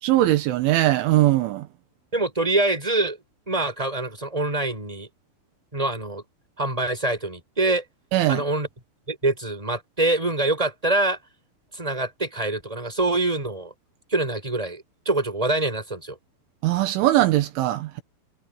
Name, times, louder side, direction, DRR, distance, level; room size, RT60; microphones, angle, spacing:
voice 1, 0.0-1.7 8.1-8.4 16.6-18.0, right 15 dB, 80° right, 3.8 m, -20 dB
voice 2, 2.1-3.2 3.5-5.1 5.7-6.2 6.6-7.8 8.3-8.7 9.1-11.2 11.7-13.7 14.1-16.2, right 2 dB, 5° right, 7.4 m, -25 dB
omnidirectional pair, 5.4 m